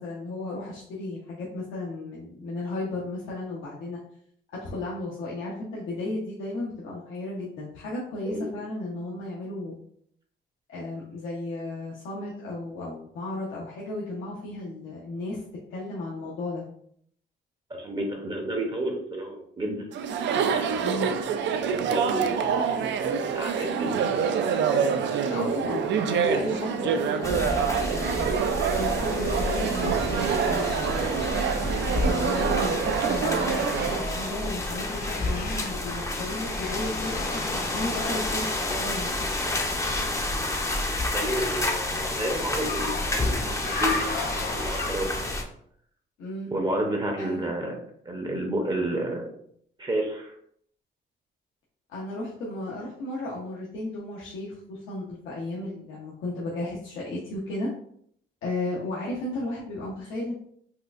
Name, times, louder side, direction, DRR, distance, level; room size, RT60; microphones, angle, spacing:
voice 1, 0.0-4.0 4.6-9.8 10.7-15.4 15.7-16.6 20.8-21.1 25.3-28.2 28.7-31.2 32.0-39.1 46.2-46.5 47.2-47.5 51.9-57.7 58.4-60.3, left 2 dB, 80° left, -5 dB, 0.8 m, -34 dB
voice 2, 17.7-19.9 20.5-21.1 21.5-24.2 25.5-25.8 26.2-26.6 41.0-44.1 44.3-45.3 46.5-47.7 48.0-49.3 49.8-50.3, right 1 dB, 25° right, 2 dB, 0.6 m, -31 dB
Chatter, 19.9-34.1, right 7 dB, 65° right, 0.4 m, -26 dB
sound 1, 27.2-45.4, left 2 dB, 15° left, 0.5 m, -30 dB
sound 2, 28.8-31.5 31.8-39.1 40.6-45.3, left 3 dB, 50° left, 0.7 m, -38 dB
4.3 x 2.4 x 2.4 m, 0.66 s
cardioid pair, 90°, 20 cm